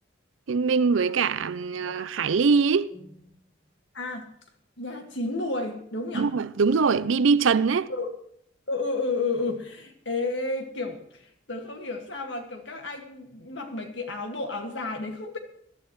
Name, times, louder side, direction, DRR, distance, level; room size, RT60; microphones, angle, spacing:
voice 1, 0.5-2.9 6.1-7.9, right 5 dB, 85° right, 0.5 m, -22 dB
sound 1, 0.9-3.8 4.1-4.3 4.9-5.4, left 1 dB, 30° left, 4.9 m, -51 dB
voice 2, 3.9-4.3 4.8-6.3 7.9-8.1 8.7-15.4, left 3 dB, 70° left, 2.0 m, -31 dB
21.0 x 12.0 x 3.1 m
head